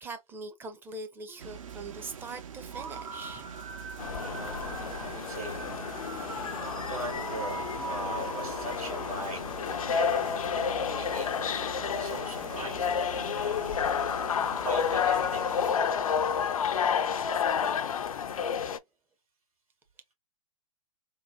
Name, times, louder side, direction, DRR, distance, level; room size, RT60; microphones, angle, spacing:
voice 1, 0.0-3.5 6.3-6.5, right 3 dB, 10° right, 0.5 m, -43 dB
sound 1, 1.4-15.7, right 8 dB, 65° right, 0.7 m, -44 dB
sound 2, 2.7-9.1, right 5 dB, 50° right, 1.8 m, -42 dB
sound 3, 4.0-18.8, left 7 dB, 75° left, 0.4 m, -30 dB
voice 2, 4.1-4.7 5.0-5.6 6.7-11.4 12.0-12.9 13.2-13.7 14.5-15.5, right 1 dB, 85° right, 2.3 m, -40 dB
3.7 x 2.1 x 2.6 m
figure-of-eight pair, 115°, 18 cm